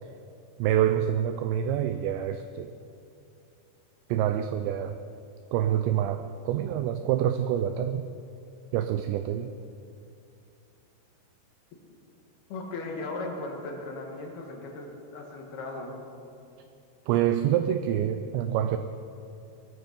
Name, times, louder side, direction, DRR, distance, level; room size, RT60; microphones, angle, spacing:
voice 1, 0.6-2.7 4.1-5.0 5.5-8.1 8.7-9.5 17.1-18.8, right 10 dB, 90° right, 9 dB, 2.5 m, -26 dB
voice 2, 12.5-16.0, left 2 dB, 60° left, 1 dB, 3.1 m, -37 dB
19.0 x 14.5 x 5.2 m, 2.6 s
omnidirectional pair, 5.7 m